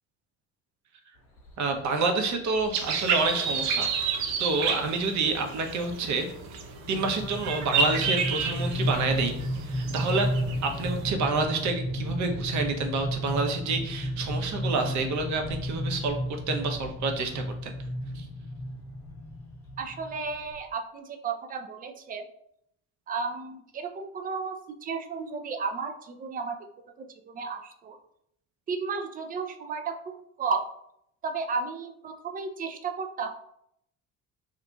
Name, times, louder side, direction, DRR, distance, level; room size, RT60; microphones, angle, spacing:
sound 1, 1.5-1.7 2.6-2.7 3.1-3.2 3.5-3.8 4.2-20.6, equal, 80° left, 1.1 m, -33 dB
voice 1, 1.6-3.9 4.4-6.3 6.9-9.3 9.6-10.3 10.6-16.2 16.5-17.7 18.2-18.3, right 3 dB, 45° right, 4 dB, 0.8 m, -28 dB
sound 2, 2.7-11.0, right 5 dB, 70° right, 0.6 m, -31 dB
voice 2, 19.8-22.3 23.1-26.6 27.0-28.0 28.7-30.7 31.2-33.3, right 5 dB, 20° right, 6 dB, 0.4 m, -33 dB
2.8 x 2.5 x 3.4 m, 0.74 s
figure-of-eight pair, 55°, 41 cm